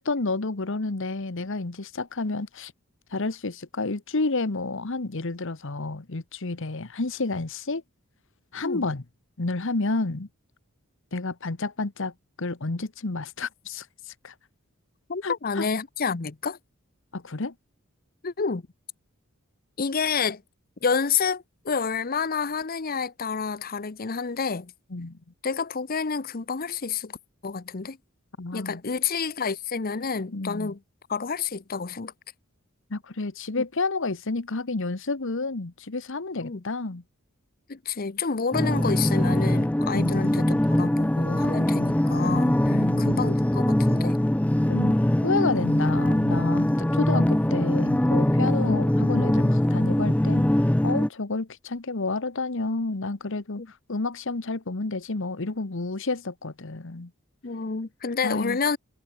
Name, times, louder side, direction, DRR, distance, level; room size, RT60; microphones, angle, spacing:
voice 1, 0.0-2.7 3.1-7.8 8.5-9.0 9.4-10.3 11.1-13.9 14.2-14.3 15.2-15.7 17.1-17.5 24.9-25.2 28.4-28.8 30.3-30.7 32.9-37.0 39.9-40.4 42.7-43.3 44.7-45.0 45.2-53.6 53.9-57.1 58.2-58.6, left 3 dB, 65° left, 1.2 m, -30 dB
voice 2, 15.1-16.6 18.2-18.6 19.8-20.4 20.8-24.7 25.4-27.2 27.4-28.0 28.5-30.8 31.1-32.1 36.4-36.6 37.7-44.2 53.6-53.7 57.4-58.8, left 5 dB, 45° left, 0.8 m, -29 dB
sound 1, 38.5-51.1, left 1 dB, 5° left, 0.4 m, -22 dB
head